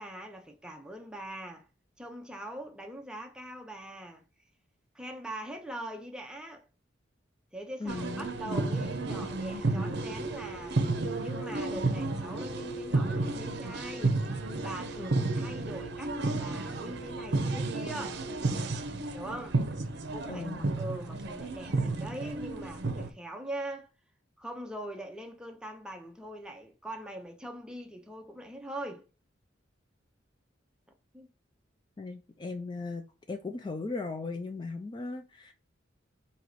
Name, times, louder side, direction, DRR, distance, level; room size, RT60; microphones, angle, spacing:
voice 1, 0.0-1.7 2.0-4.2 4.9-6.6 7.5-10.8 11.2-14.2 14.6-18.2 19.1-19.6 20.1-23.9 24.4-29.1 31.1-31.3, right 1 dB, 5° right, 0.7 m, -42 dB
voice 2, 7.8-8.3 20.3-20.8 32.0-35.5, left 3 dB, 25° left, 0.3 m, -37 dB
sound 1, 7.9-23.1, right 2 dB, 60° right, 0.7 m, -32 dB
4.6 x 2.9 x 4.0 m
head